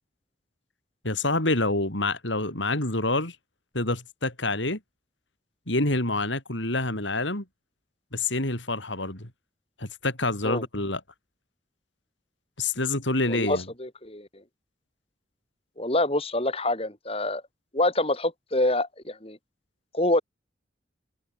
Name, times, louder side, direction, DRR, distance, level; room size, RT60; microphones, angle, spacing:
voice 1, 1.0-3.4 3.7-4.8 5.7-7.4 8.1-9.3 9.8-11.0 12.6-13.6, left 2 dB, 80° left, 6.1 m, -27 dB
voice 2, 13.3-14.3 15.8-17.4 17.7-19.4 19.9-20.2, left 1 dB, 30° left, 6.3 m, -26 dB
head